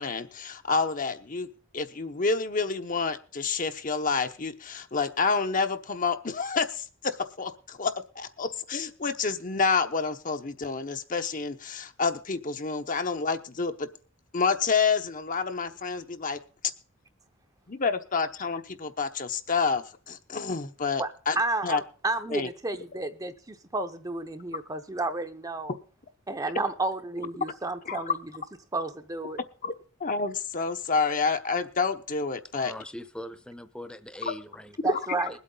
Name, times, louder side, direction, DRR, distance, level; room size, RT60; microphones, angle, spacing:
voice 1, 0.0-1.5 1.7-13.9 14.3-16.4 17.7-21.4 21.6-21.8 22.3-22.5 27.9-28.1 29.6-29.7 30.0-32.7, left 4 dB, 45° left, 7 dB, 1.0 m, -28 dB
voice 2, 21.0-25.7 26.3-28.2 28.7-29.4 34.8-35.4, right 2 dB, 20° right, 8 dB, 0.8 m, -31 dB
voice 3, 32.5-34.8 35.3-35.4, left 1 dB, 5° left, 11 dB, 0.9 m, -41 dB
21.0 x 8.3 x 3.9 m, 0.40 s
head